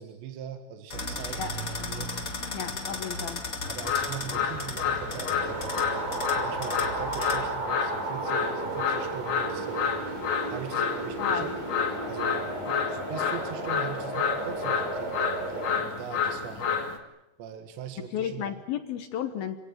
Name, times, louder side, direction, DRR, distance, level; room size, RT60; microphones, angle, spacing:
voice 1, 0.0-2.2 2.8-3.1 3.7-11.5 12.1-16.8 17.4-18.5, right 8 dB, 70° right, 7 dB, 3.8 m, -41 dB
sound 1, 0.9-7.5, left 2 dB, 25° left, 1.9 m, -36 dB
voice 2, 2.5-3.4 11.2-11.4 18.1-19.6, left 9 dB, 65° left, 8 dB, 2.6 m, -33 dB
Brisbane Ambience Cane Toad, 3.6-17.0, left 6 dB, 50° left, 3.4 m, -30 dB
sound 2, 5.0-15.8, right 3 dB, 50° right, 5.3 m, -34 dB
27.5 x 18.0 x 9.4 m, 0.94 s
omnidirectional pair, 5.5 m